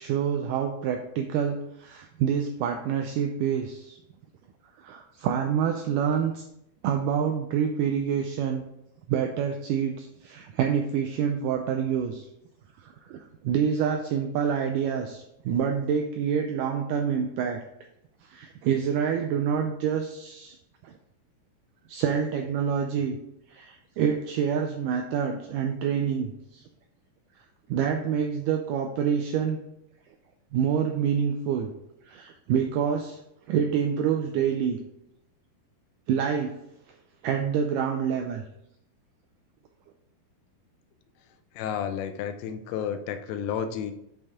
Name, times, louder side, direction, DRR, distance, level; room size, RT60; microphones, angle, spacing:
voice 1, 0.0-4.0 4.8-6.4 6.8-8.6 9.1-12.3 12.8-17.6 18.3-20.6 20.8-20.9 21.9-23.2 23.5-26.6 27.7-29.6 30.5-31.7 32.1-33.2 33.5-34.8 36.1-36.5 37.2-38.4, right 7 dB, 90° right, 4 dB, 1.8 m, -27 dB
voice 2, 41.2-43.9, left 8 dB, 85° left, 8 dB, 2.5 m, -32 dB
7.9 x 5.4 x 3.5 m, 0.80 s
omnidirectional pair, 4.3 m